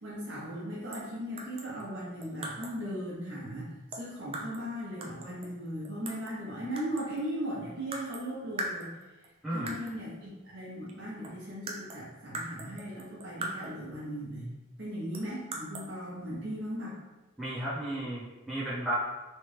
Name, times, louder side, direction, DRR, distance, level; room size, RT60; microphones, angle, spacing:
voice 1, 0.0-8.9 9.5-14.5 14.8-17.0, equal, 60° right, -6 dB, 1.1 m, -38 dB
sound 1, 0.9-1.1 1.4-2.8 3.9-4.7 5.0-6.4 6.8-7.3 7.9-8.3 8.6-9.3 9.7-10.0 10.9-11.0 11.2-13.9 15.1-15.9, right 2 dB, 30° right, 0.4 m, -41 dB
voice 2, 9.4-9.8 17.4-19.0, right 1 dB, ahead, -11 dB, 1.1 m, -34 dB
3.2 x 2.5 x 3.3 m, 1.1 s
head